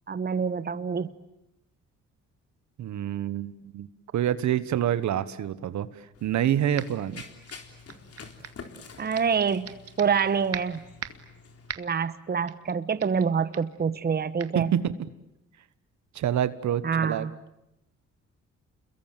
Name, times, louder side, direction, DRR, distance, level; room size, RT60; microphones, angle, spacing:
voice 1, 0.1-1.1 9.0-10.8 11.8-14.8 16.8-17.3, right 6 dB, 30° right, 14 dB, 1.2 m, -26 dB
voice 2, 2.8-3.9 4.1-5.9 6.2-7.2 14.5-15.0 16.1-17.3, right 10 dB, 70° right, 14 dB, 1.4 m, -27 dB
Run, 6.1-11.7, left 5 dB, 50° left, 3.9 m, -47 dB
sound 1, 6.8-7.1 7.5-8.7 9.1-10.2 10.5-11.3 11.7-12.0 12.5-12.7 13.0-13.3 13.5-13.8 14.4-14.5, right 8 dB, 55° right, 1.9 m, -39 dB
28.5 x 22.5 x 9.1 m, 0.85 s
cardioid pair, 90°, 30 cm